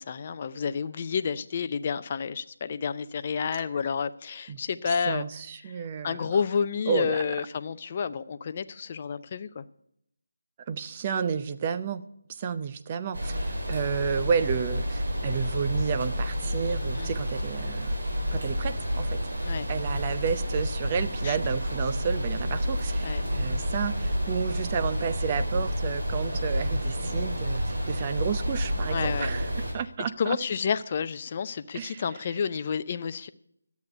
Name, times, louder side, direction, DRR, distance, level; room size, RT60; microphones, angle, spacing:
voice 1, 0.0-5.2 6.0-9.6 16.9-17.1 19.4-19.7 21.2-21.4 23.0-23.2 28.9-29.3 30.2-33.3, left 6 dB, 35° left, 12 dB, 0.5 m, -30 dB
voice 2, 4.5-6.3 6.9-7.2 10.7-12.0 12.4-17.9 18.3-19.2 19.7-29.5 29.7-30.4 31.7-32.0, right 6 dB, 25° right, 11 dB, 0.6 m, -31 dB
sound 1, 13.1-29.7, equal, 60° right, 4.4 m, -29 dB
12.0 x 8.3 x 7.9 m, 0.75 s
figure-of-eight pair, 160°, 0 cm